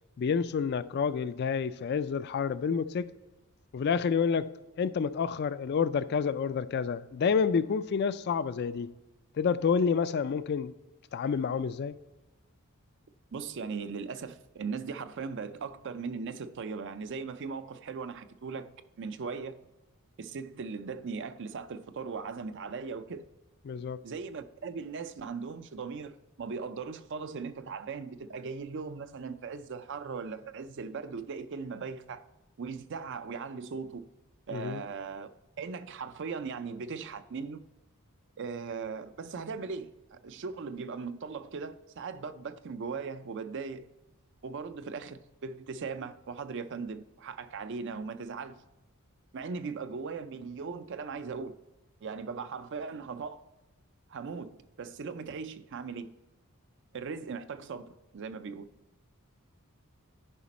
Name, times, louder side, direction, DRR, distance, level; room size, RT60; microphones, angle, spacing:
voice 1, 0.2-3.1 3.7-4.5 4.8-8.9 9.4-10.7 11.1-12.0 23.7-24.0 34.5-34.8, left 6 dB, 45° left, 0.3 m, -29 dB
voice 2, 13.3-18.7 19.0-19.6 20.2-23.2 24.0-32.2 32.6-34.0 34.5-35.3 35.6-37.6 38.4-43.9 44.4-48.6 49.3-51.5 52.0-53.4 54.1-56.1 56.9-58.7, right 5 dB, 55° right, 0.4 m, -39 dB
10.0 x 5.1 x 4.2 m
head